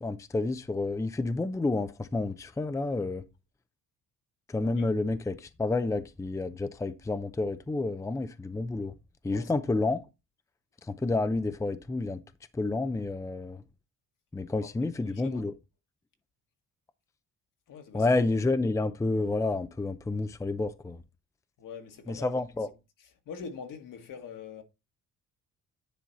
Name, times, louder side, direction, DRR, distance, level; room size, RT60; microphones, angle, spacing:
voice 1, 0.0-3.2 4.5-8.9 9.2-10.0 10.8-12.2 12.5-13.6 14.3-15.5 17.9-21.0 22.1-22.7, left 3 dB, 10° left, 0.5 m, -29 dB
voice 2, 14.9-15.4 17.7-18.0 21.6-22.3 23.3-24.6, left 6 dB, 70° left, 1.9 m, -43 dB
10.0 x 4.4 x 4.1 m
cardioid pair, 105°, 33 cm